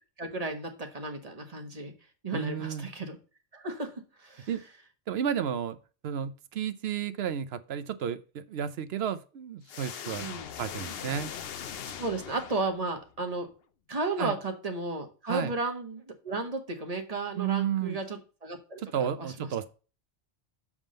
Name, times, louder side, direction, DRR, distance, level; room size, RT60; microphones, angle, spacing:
voice 1, 0.2-1.9 2.2-3.2 3.5-3.9 4.2-4.5 10.2-10.5 12.0-13.5 13.9-19.5, right 3 dB, 35° right, 1.3 m, -34 dB
voice 2, 2.3-2.9 4.5-4.6 5.1-5.8 6.0-10.2 10.6-11.3 14.2-14.4 15.3-15.5 17.3-18.0 18.8-19.7, right 8 dB, 65° right, 0.8 m, -32 dB
sound 1, 9.7-13.1, left 8 dB, 60° left, 0.8 m, -40 dB
7.2 x 3.6 x 6.3 m
omnidirectional pair, 1.2 m